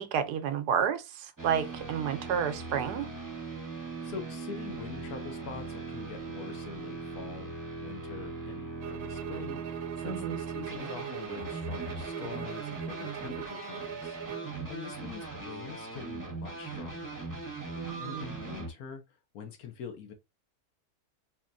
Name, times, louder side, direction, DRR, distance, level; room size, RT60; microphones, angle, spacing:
voice 1, 0.0-3.1 10.0-10.4 17.7-18.3, right 8 dB, 90° right, 1.2 m, -31 dB
sound 1, 1.4-18.7, right 3 dB, 15° right, 0.7 m, -40 dB
voice 2, 3.7-7.6 7.8-14.2 14.7-17.2 18.0-19.0 19.3-20.1, left 7 dB, 70° left, 1.3 m, -44 dB
sound 2, 8.8-14.6, right 11 dB, 70° right, 1.0 m, -41 dB
4.1 x 2.8 x 2.5 m
omnidirectional pair, 1.7 m